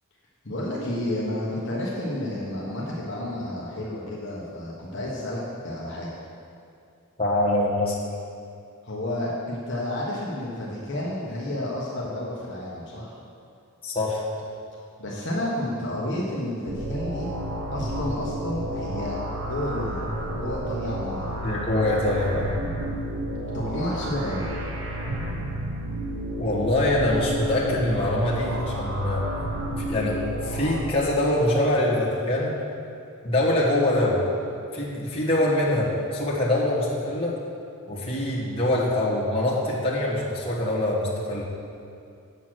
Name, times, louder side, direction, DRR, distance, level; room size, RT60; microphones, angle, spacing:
voice 1, 0.4-6.1 8.8-13.1 15.0-17.3 17.7-19.2 19.5-21.3 23.5-24.5, left 1 dB, 55° left, -5 dB, 1.2 m, -31 dB
voice 2, 7.2-7.9 13.8-14.2 21.4-22.5 26.4-29.2 29.8-32.5 33.2-34.2 34.7-37.4 37.9-41.4, left 1 dB, 25° left, -7 dB, 1.7 m, -24 dB
sound 1, 16.7-30.8, right 1 dB, 60° right, 1.1 m, -31 dB
8.3 x 6.3 x 6.2 m, 2.5 s
head